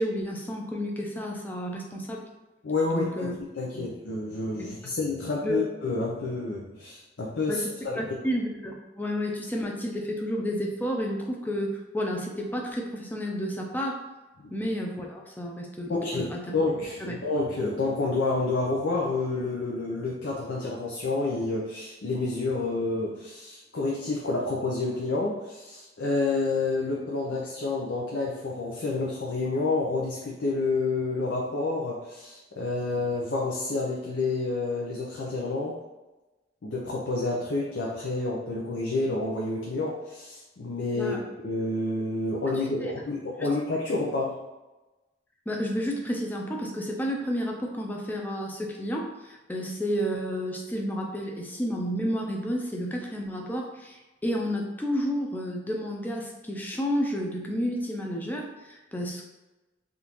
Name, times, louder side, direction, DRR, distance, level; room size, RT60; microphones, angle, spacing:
voice 1, 0.0-2.3 2.9-3.3 3.7-3.9 4.6-4.7 5.4-5.6 7.5-14.0 14.5-16.5 17.0-17.1 41.0-41.2 42.8-42.9 43.4-43.5 45.5-59.3, equal, 10° left, 0 dB, 0.4 m, -31 dB
voice 2, 2.6-3.3 3.6-8.0 14.4-14.5 15.9-35.8 36.6-41.1 41.4-44.4, left 3 dB, 90° left, -3 dB, 0.6 m, -29 dB
3.5 x 2.5 x 2.9 m, 1.1 s
head